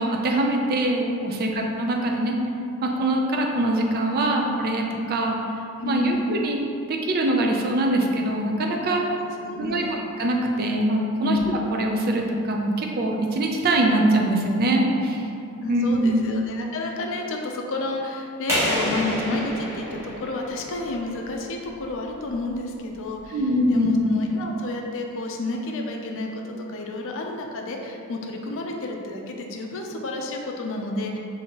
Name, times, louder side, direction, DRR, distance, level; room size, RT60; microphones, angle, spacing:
voice 1, 0.0-1.5 1.8-2.4 2.8-5.4 5.9-6.6 6.9-9.0 9.6-9.8 10.2-15.2 15.7-16.3 23.3-24.0, right 1 dB, 45° right, 1 dB, 0.4 m, -23 dB
voice 2, 5.8-6.2 9.0-9.1 9.4-10.0 11.2-11.4 15.6-31.2, left 2 dB, 65° left, 1 dB, 0.4 m, -30 dB
sound 1, 18.5-21.1, equal, 10° right, 1.2 m, -28 dB
4.3 x 2.7 x 2.9 m, 2.5 s
head